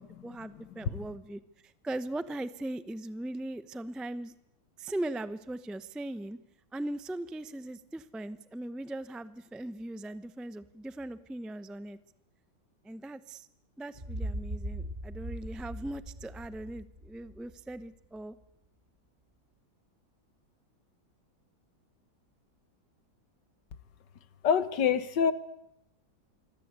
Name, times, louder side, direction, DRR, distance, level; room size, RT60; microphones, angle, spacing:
voice 1, 0.0-4.3 4.8-6.4 6.7-12.0 12.8-13.5 13.8-18.4, right 1 dB, ahead, 13 dB, 0.3 m, -39 dB
sound 1, 13.9-17.8, right 1 dB, 20° right, 6.2 m, -39 dB
voice 2, 24.4-25.3, left 7 dB, 60° left, 14 dB, 1.9 m, -26 dB
27.0 x 24.0 x 8.3 m, 0.82 s
omnidirectional pair, 2.2 m